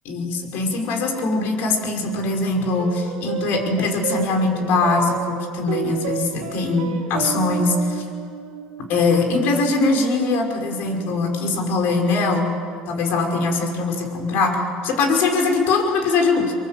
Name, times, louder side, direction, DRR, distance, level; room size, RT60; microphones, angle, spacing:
voice 1, 0.1-8.0 8.9-12.5 12.9-16.5, left 3 dB, 65° left, 3 dB, 5.4 m, -21 dB
sound 1, 2.8-11.4, right 8 dB, 80° right, 2.1 m, -32 dB
24.0 x 23.5 x 7.5 m, 2.1 s
supercardioid pair, 90°, 4 cm